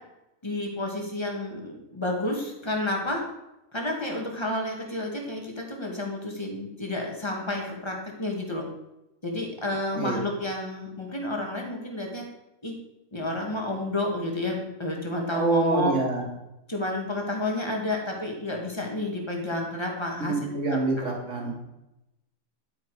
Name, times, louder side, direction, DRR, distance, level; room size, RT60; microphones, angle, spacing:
voice 1, 0.4-3.2 3.7-8.6 9.2-12.2 12.6-12.7 13.1-15.9 16.7-20.8, left 1 dB, 20° left, 0 dB, 2.3 m, -30 dB
voice 2, 15.3-16.2 20.2-21.5, right 3 dB, 55° right, -1 dB, 3.0 m, -26 dB
11.5 x 8.5 x 5.0 m, 0.93 s
omnidirectional pair, 1.5 m